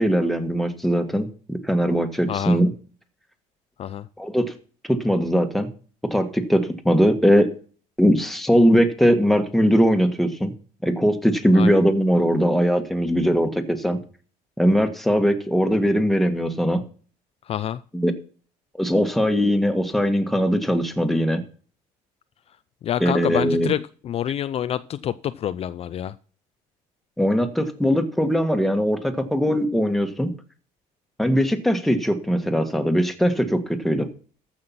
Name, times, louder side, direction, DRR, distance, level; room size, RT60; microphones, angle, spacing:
voice 1, 0.0-2.7 4.2-4.5 4.9-5.7 6.1-7.5 8.0-10.5 10.8-14.0 14.6-16.8 17.9-18.1 18.8-21.4 23.0-23.7 27.2-30.3 31.2-34.1, equal, ahead, 6 dB, 1.6 m, -20 dB
voice 2, 2.3-2.6 3.8-4.1 11.5-11.8 17.5-17.8 22.8-26.1, left 10 dB, 45° left, 13 dB, 0.5 m, -27 dB
14.0 x 5.9 x 5.8 m, 0.40 s
cardioid pair, 125°, 14 cm